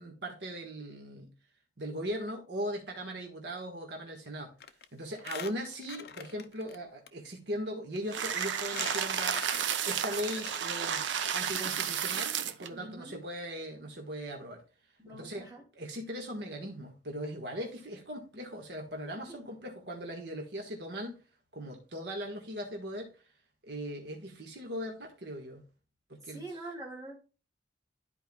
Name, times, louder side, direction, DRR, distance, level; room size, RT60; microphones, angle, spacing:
voice 1, 0.0-1.3 1.8-4.6 4.9-14.6 15.1-15.5 15.7-21.2 21.5-23.1 23.6-25.6 26.1-26.6, equal, 70° right, 1 dB, 1.5 m, -39 dB
Squeak, 4.6-4.8 5.1-6.8 7.1-7.2 7.9-8.0 8.4-10.7 11.1-11.2 11.4-11.5, left 7 dB, 60° left, 0.6 m, -44 dB
sound 1, 8.1-12.7, right 8 dB, 85° right, 0.6 m, -32 dB
voice 2, 12.7-13.2 15.0-15.6 19.3-19.5 26.3-27.2, right 2 dB, 20° right, -4 dB, 2.8 m, -44 dB
12.5 x 4.6 x 2.3 m, 0.34 s
head